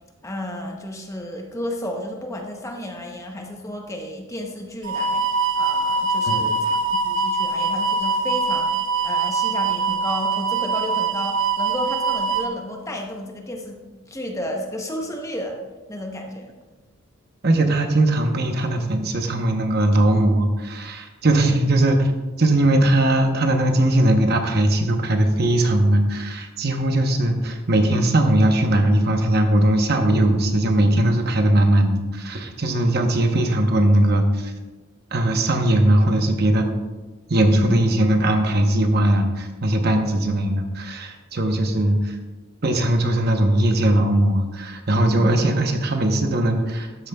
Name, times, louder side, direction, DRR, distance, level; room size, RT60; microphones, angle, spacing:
voice 1, 0.2-13.8 14.1-15.6 15.9-16.5 37.4-37.8, left 1 dB, 15° left, 2 dB, 0.8 m, -32 dB
sound 1, 4.8-12.5, right 4 dB, 75° right, 0.9 m, -23 dB
voice 2, 17.4-22.1 22.4-34.5 35.1-36.7 37.3-42.2 42.6-47.1, right 1 dB, 50° right, 5 dB, 0.9 m, -19 dB
12.5 x 8.7 x 2.3 m, 1.2 s
head